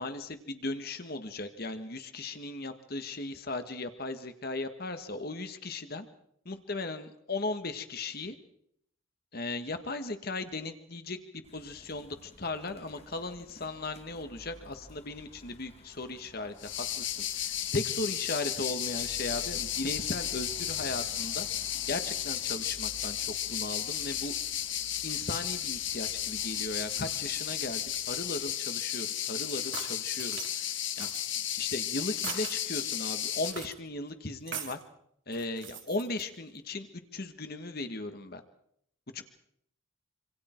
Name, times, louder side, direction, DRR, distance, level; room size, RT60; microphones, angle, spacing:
voice 1, 0.0-6.1 6.4-8.3 9.3-11.2 11.5-21.5 21.9-24.3 25.0-31.1 31.6-34.8 35.3-38.4 39.1-39.2, left 2 dB, 50° left, 8 dB, 1.6 m, -37 dB
sound 1, 11.4-28.5, left 1 dB, 30° left, 1.4 m, -53 dB
sound 2, 16.6-33.5, left 11 dB, 65° left, 1.5 m, -34 dB
sound 3, 29.5-30.5 31.0-31.2 32.2-32.6 33.4-33.7 34.5-34.8 35.3-36.2, right 7 dB, 65° right, 3.0 m, -40 dB
26.5 x 25.5 x 4.5 m, 0.73 s
head